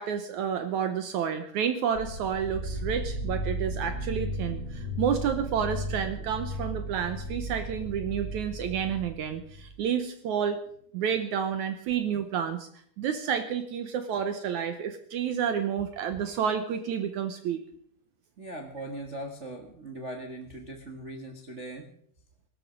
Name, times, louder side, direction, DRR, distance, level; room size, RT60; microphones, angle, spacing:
voice 1, 0.0-10.6 10.9-12.7 13.0-17.6, right 8 dB, 70° right, 9 dB, 1.9 m, -30 dB
sound 1, 2.0-9.8, equal, 35° left, 3.2 m, -35 dB
voice 2, 18.4-21.9, right 1 dB, 90° right, 2 dB, 0.6 m, -40 dB
17.5 x 13.0 x 5.2 m, 0.62 s
omnidirectional pair, 4.3 m